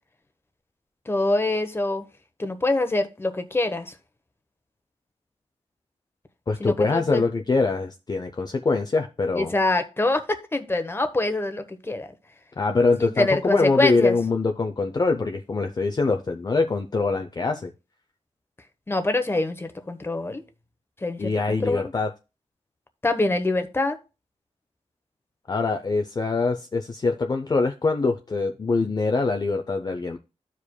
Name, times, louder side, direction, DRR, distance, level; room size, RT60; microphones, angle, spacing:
voice 1, 1.1-2.0 2.4-3.9 6.6-7.2 9.4-12.1 13.0-14.1 18.9-20.4 21.0-21.9 23.0-24.0, left 2 dB, 20° left, 0.9 m, -25 dB
voice 2, 6.5-9.5 12.6-17.7 21.2-22.1 25.5-30.2, left 3 dB, 35° left, 0.6 m, -24 dB
14.0 x 4.9 x 2.2 m
wide cardioid pair, 105°, 12 cm